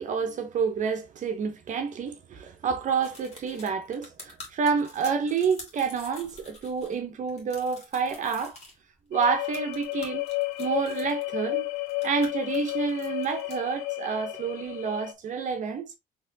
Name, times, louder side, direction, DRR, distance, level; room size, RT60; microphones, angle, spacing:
voice 1, 0.0-8.6 9.1-10.2 10.6-11.7 12.0-15.9, right 6 dB, 50° right, 0.8 m, -29 dB
sound 1, 3.0-7.0 7.3-8.7 9.2-11.2 11.8-13.6, left 2 dB, 40° left, 1.7 m, -47 dB
sound 2, 9.1-15.1, left 22 dB, 80° left, 0.5 m, -32 dB
4.1 x 2.9 x 2.7 m
cardioid pair, 110°, 17 cm